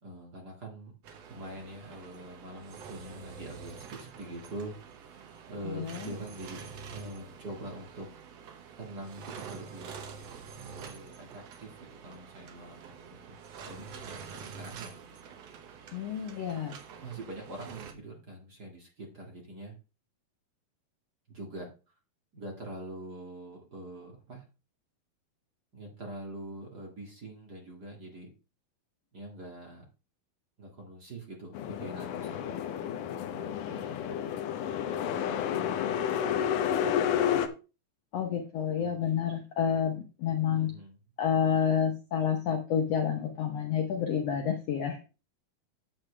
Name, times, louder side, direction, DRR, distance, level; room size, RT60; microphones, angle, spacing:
voice 1, 0.0-0.9 1.3-4.8 5.5-8.1 8.8-10.4 10.7-11.7 12.0-13.4 13.6-14.9 17.0-19.8 21.3-21.7 22.3-24.4 25.7-28.3 29.1-29.8 30.6-32.6 33.3-34.7 35.3-36.9 38.8-38.9 40.5-41.0, right 1 dB, 35° right, 0 dB, 1.9 m, -44 dB
sound 1, 1.0-17.9, right 6 dB, 65° right, 1.6 m, -47 dB
voice 2, 5.6-6.1 15.9-16.7 35.5-36.1 38.1-40.7 41.2-45.0, left 8 dB, 90° left, 4 dB, 1.4 m, -29 dB
sound 2, 31.5-37.5, left 9 dB, 70° left, 2.1 m, -30 dB
10.5 x 7.4 x 3.3 m, 0.32 s
omnidirectional pair, 4.3 m